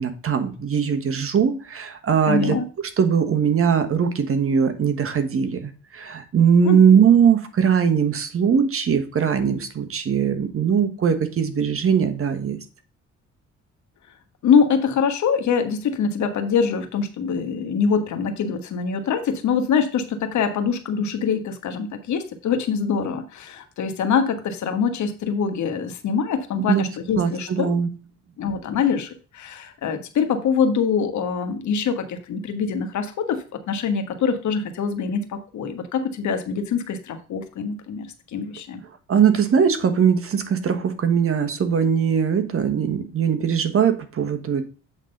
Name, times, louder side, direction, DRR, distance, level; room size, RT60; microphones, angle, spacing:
voice 1, 0.0-2.5 3.0-12.6 26.5-26.8 27.2-27.9 39.1-44.7, right 7 dB, 45° right, 9 dB, 1.3 m, -20 dB
voice 2, 2.3-2.7 6.6-6.8 14.4-27.7 28.4-38.8, left 6 dB, 70° left, 7 dB, 1.4 m, -24 dB
8.1 x 3.9 x 5.3 m, 0.36 s
cardioid pair, 90°, 30 cm